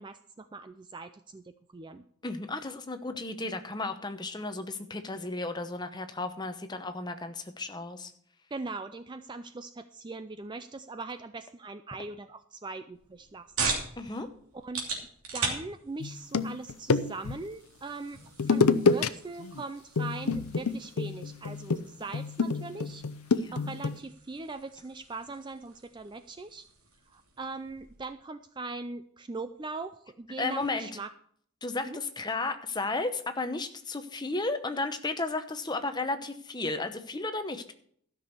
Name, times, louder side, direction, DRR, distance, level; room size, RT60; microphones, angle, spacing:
voice 1, 0.0-2.0 8.5-14.3 14.5-14.8 15.3-23.0 23.5-26.7 27.1-31.1 31.8-32.0, right 3 dB, 20° right, 10 dB, 0.3 m, -41 dB
voice 2, 2.2-8.1 14.0-14.3 23.3-23.7 30.4-30.9 31.6-37.7, left 3 dB, 20° left, 8 dB, 0.8 m, -34 dB
sound 1, 12.9-28.1, right 4 dB, 70° right, 2.8 m, -40 dB
sound 2, 16.0-17.4 18.4-19.1 19.4-19.6 20.0-24.0, left 4 dB, 80° left, 0.6 m, -27 dB
13.0 x 6.2 x 6.8 m, 0.62 s
head